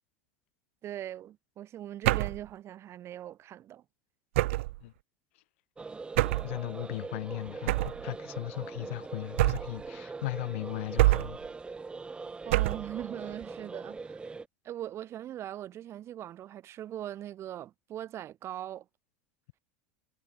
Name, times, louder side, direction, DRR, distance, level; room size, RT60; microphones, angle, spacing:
voice 1, 0.8-3.8 12.4-14.3 14.6-18.8, right 12 dB, 40° right, 4.5 m, -41 dB
sound 1, 2.0-2.5 4.3-4.8 6.2-6.5 7.7-8.0 9.4-9.8 11.0-11.5 12.5-12.9, right 19 dB, 80° right, 0.5 m, -26 dB
sound 2, 5.8-14.5, right 4 dB, 15° right, 1.2 m, -42 dB
voice 2, 6.4-11.4, left 19 dB, 80° left, 0.9 m, -37 dB
supercardioid pair, 115°, 7 cm